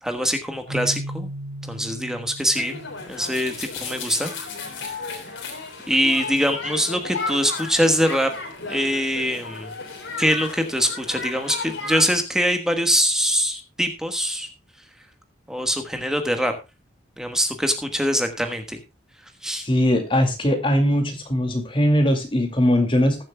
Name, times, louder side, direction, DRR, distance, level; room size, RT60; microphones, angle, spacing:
voice 1, 0.0-1.3 1.7-2.8 3.1-4.3 5.9-8.3 8.7-9.7 10.2-14.5 15.5-16.5 17.2-18.8 19.4-19.7, equal, 5° right, 6 dB, 1.3 m, -23 dB
Keyboard (musical), 0.7-3.6, right 1 dB, 60° right, 3.5 m, -36 dB
sound 1, 2.6-12.1, left 3 dB, 85° left, 3.3 m, -34 dB
voice 2, 19.6-23.2, equal, 25° left, 5 dB, 2.3 m, -20 dB
20.0 x 7.5 x 2.2 m, 0.27 s
head